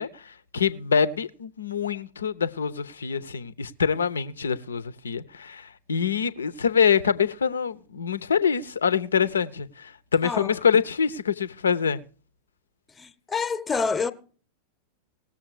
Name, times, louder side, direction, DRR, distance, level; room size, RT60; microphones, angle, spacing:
voice 1, 0.0-12.0, left 6 dB, 70° left, 0.7 m, -25 dB
voice 2, 10.2-10.6 13.0-14.1, left 5 dB, 15° left, 1.0 m, -27 dB
19.0 x 7.3 x 4.8 m
figure-of-eight pair, 90°, 0 cm